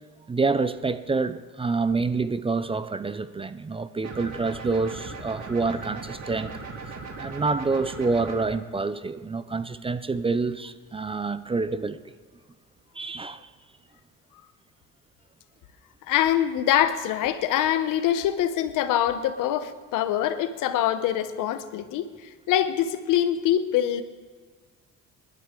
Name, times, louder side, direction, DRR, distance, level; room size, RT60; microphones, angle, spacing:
voice 1, 0.3-6.5 6.9-12.0 13.0-13.5, right 4 dB, 15° right, 13 dB, 0.5 m, -27 dB
sound 1, 4.0-8.4, right 4 dB, 55° right, 2.7 m, -38 dB
voice 2, 16.1-22.1 22.5-24.0, left 11 dB, 80° left, 12 dB, 1.0 m, -24 dB
23.5 x 11.5 x 3.8 m, 1.5 s
cardioid pair, 100°, 32 cm